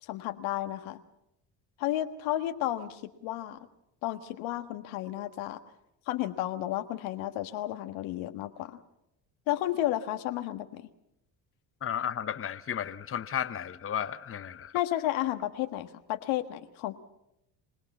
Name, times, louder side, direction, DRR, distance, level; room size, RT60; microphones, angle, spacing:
voice 1, 0.0-1.0 1.8-3.6 4.0-5.6 6.1-8.8 9.5-10.9 14.7-16.9, left 13 dB, 80° left, 8 dB, 1.6 m, -32 dB
voice 2, 11.8-14.7, left 9 dB, 30° left, 11 dB, 0.9 m, -33 dB
26.0 x 18.0 x 7.2 m, 0.81 s
supercardioid pair, 85°, 47 cm